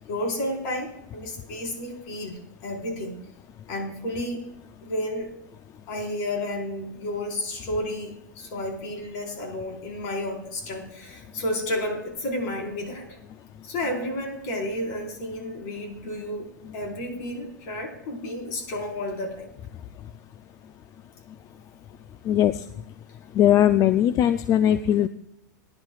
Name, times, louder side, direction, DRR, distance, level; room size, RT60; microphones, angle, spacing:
voice 1, 0.0-3.2 3.7-4.4 4.8-5.3 5.9-13.2 13.6-16.5 16.7-19.5, left 1 dB, 60° left, 1 dB, 4.5 m, -31 dB
voice 2, 22.3-22.6 23.3-25.1, left 11 dB, 35° left, 12 dB, 0.5 m, -19 dB
22.0 x 10.5 x 2.4 m, 0.80 s
hypercardioid pair, 110°, 10 cm